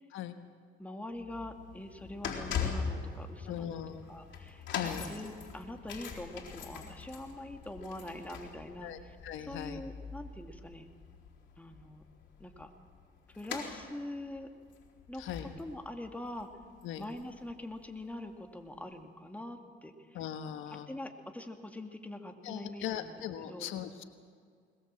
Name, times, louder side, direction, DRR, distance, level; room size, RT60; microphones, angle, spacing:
voice 1, 0.8-3.8 4.1-9.2 9.5-10.9 11.6-12.0 12.4-12.7 13.3-14.5 15.1-16.5 17.0-20.2 20.9-23.2 23.5-23.7, left 1 dB, 5° left, 4 dB, 2.3 m, -44 dB
sound 1, 1.2-17.5 17.8-18.0 18.8-18.9, left 6 dB, 65° left, 4.2 m, -42 dB
voice 2, 3.5-4.0 4.7-5.0 8.8-9.8 15.2-15.5 16.8-17.0 20.1-20.9 22.4-24.0, left 10 dB, 90° left, 8 dB, 1.3 m, -39 dB
21.0 x 21.0 x 7.6 m, 2.1 s
cardioid pair, 90°, 20 cm